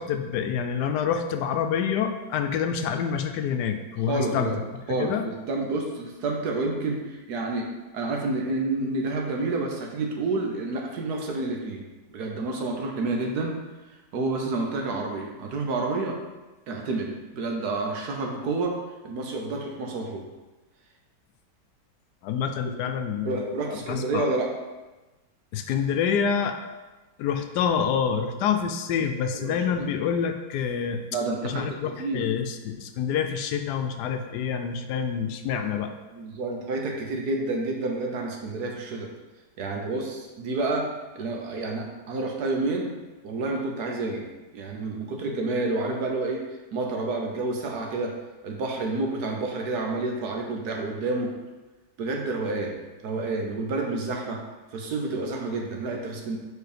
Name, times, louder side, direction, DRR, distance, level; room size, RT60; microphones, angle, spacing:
voice 1, 0.0-4.6 5.0-5.2 22.2-24.2 25.5-26.6 27.2-31.0 31.4-35.9, left 7 dB, 75° left, 6 dB, 1.1 m, -27 dB
voice 2, 4.1-4.6 4.9-7.7 7.9-11.8 12.1-13.6 14.1-16.2 16.7-18.8 19.0-20.2 23.2-24.5 29.3-29.5 31.1-32.3 36.1-39.1 39.6-42.9 43.2-44.2 44.5-46.4 46.7-48.2 48.4-51.4 52.0-54.4 54.7-56.4, right 3 dB, 70° right, 1 dB, 1.4 m, -29 dB
4.7 x 4.7 x 4.9 m, 1.1 s
omnidirectional pair, 1.8 m